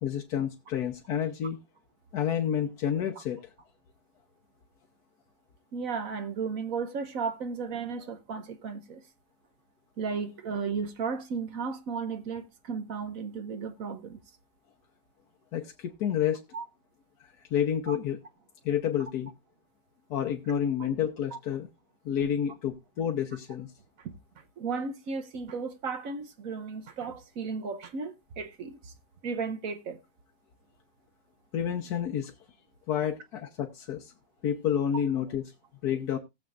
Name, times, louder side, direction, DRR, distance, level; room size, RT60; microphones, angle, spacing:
voice 1, 0.0-1.6 2.1-3.4 15.5-16.4 17.5-18.2 18.6-19.3 20.1-21.7 22.0-23.7 31.5-32.3 32.9-34.1 34.4-35.5 35.8-36.2, left 9 dB, 65° left, 1.3 m, -29 dB
voice 2, 5.7-9.0 10.0-14.2 16.5-16.6 17.9-18.0 21.3-21.4 24.0-24.1 24.6-28.9 29.2-30.0, right 5 dB, 60° right, 1.1 m, -34 dB
18.5 x 7.2 x 2.5 m
omnidirectional pair, 1.9 m